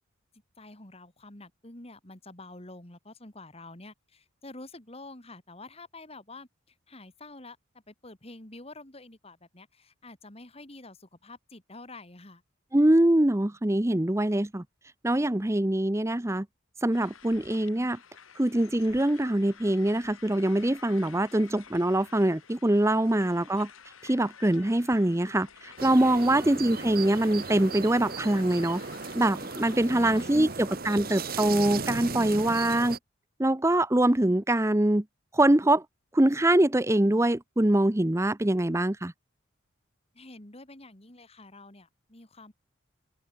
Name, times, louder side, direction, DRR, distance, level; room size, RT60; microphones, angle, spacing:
voice 1, 0.6-7.6 7.9-12.4 26.2-26.4 29.9-30.6 40.1-42.5, left 2 dB, 30° left, 2.5 m, -48 dB
voice 2, 12.7-14.6 15.0-16.5 16.8-18.0 18.4-23.7 24.0-28.8 29.1-33.0 33.4-35.0 35.3-35.8 36.1-39.1, right 1 dB, 15° right, 0.7 m, -24 dB
sound 1, 16.9-30.3, left 7 dB, 85° left, 2.1 m, -52 dB
sound 2, 25.8-33.0, right 4 dB, 45° right, 1.8 m, -36 dB
head